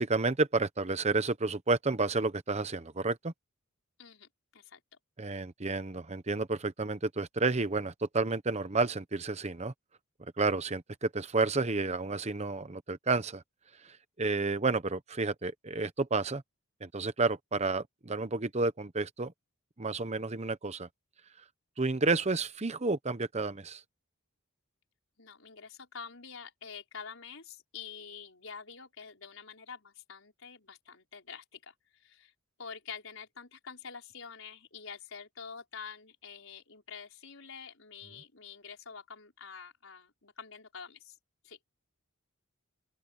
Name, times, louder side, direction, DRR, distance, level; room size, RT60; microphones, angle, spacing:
voice 1, 0.0-3.3 5.2-9.7 10.4-13.4 13.8-16.4 16.8-19.3 19.8-20.9 21.8-23.8, right 3 dB, 30° right, 0.9 m, -31 dB
voice 2, 4.0-4.8 25.2-32.3 32.6-41.2 41.4-41.6, left 6 dB, 70° left, 5.7 m, -47 dB
open air
head